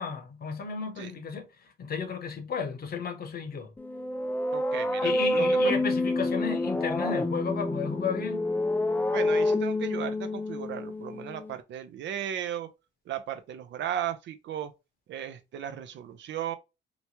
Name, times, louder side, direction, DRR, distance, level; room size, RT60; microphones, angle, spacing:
voice 1, 0.0-3.7 5.0-8.4, left 6 dB, 50° left, 0.9 m, -33 dB
sound 1, 3.8-11.5, left 1 dB, 10° left, 0.3 m, -28 dB
voice 2, 4.5-5.8 9.1-12.7 13.1-14.7 15.1-16.6, right 10 dB, 70° right, 0.5 m, -36 dB
2.9 x 2.2 x 2.8 m
cardioid pair, 90°, 20 cm